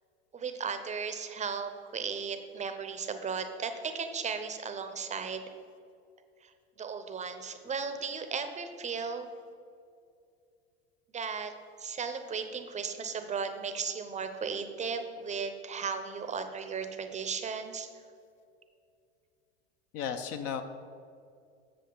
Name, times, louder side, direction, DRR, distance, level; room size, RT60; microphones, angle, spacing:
voice 1, 0.3-5.4 6.4-6.5 6.8-9.3 11.1-11.5 11.8-17.9, right 5 dB, 20° right, 8 dB, 0.6 m, -36 dB
voice 2, 19.9-20.6, left 7 dB, 50° left, 8 dB, 0.6 m, -34 dB
7.7 x 7.3 x 3.8 m, 2.4 s
hypercardioid pair, 90°, 32 cm